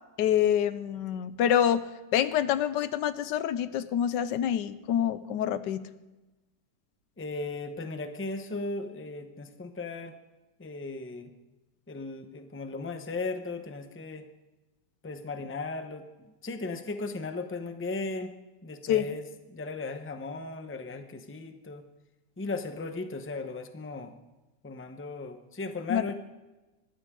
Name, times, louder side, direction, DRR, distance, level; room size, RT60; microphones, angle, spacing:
voice 1, 0.2-1.8 2.1-5.8 18.9-19.1 25.9-26.1, left 10 dB, 85° left, 14 dB, 1.3 m, -26 dB
voice 2, 7.2-10.1 10.6-11.3 11.9-14.2 15.0-18.3 18.6-21.8 22.4-24.1 24.6-26.1, left 3 dB, 10° left, 7 dB, 0.6 m, -36 dB
21.0 x 14.5 x 3.8 m, 1.1 s
omnidirectional pair, 1.9 m